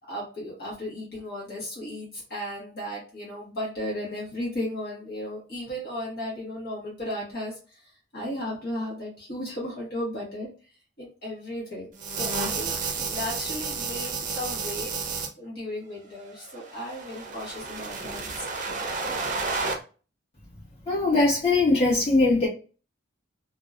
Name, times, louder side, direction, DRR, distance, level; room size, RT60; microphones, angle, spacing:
voice 1, 0.1-10.5 11.0-11.9 12.2-14.9 15.4-18.8, left 1 dB, 55° left, 1.0 m, -35 dB
sound 1, 12.0-15.3 16.4-19.8, right 4 dB, 40° right, 0.5 m, -31 dB
voice 2, 20.9-22.5, left 2 dB, 35° left, 1.3 m, -21 dB
2.6 x 2.2 x 2.3 m
head